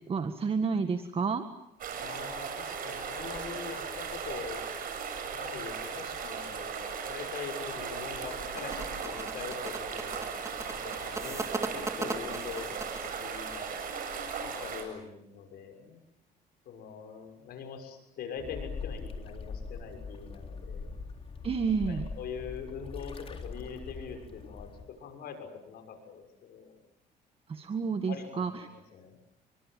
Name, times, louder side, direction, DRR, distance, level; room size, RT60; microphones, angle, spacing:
voice 1, 0.1-1.4 21.4-22.1 27.5-28.5, right 5 dB, 35° right, 8 dB, 1.8 m, -30 dB
sound 1, 1.8-14.8, right 6 dB, 55° right, 7.5 m, -37 dB
voice 2, 2.0-4.6 5.3-10.4 10.7-13.8 14.4-16.0 16.6-20.9 21.9-26.8 28.1-29.2, left 6 dB, 70° left, 6 dB, 6.6 m, -43 dB
sound 2, 8.1-13.2, right 2 dB, 15° right, 2.8 m, -38 dB
sound 3, 18.4-24.8, left 4 dB, 35° left, 4.0 m, -41 dB
29.5 x 24.0 x 7.6 m, 0.79 s
cardioid pair, 110°, 17 cm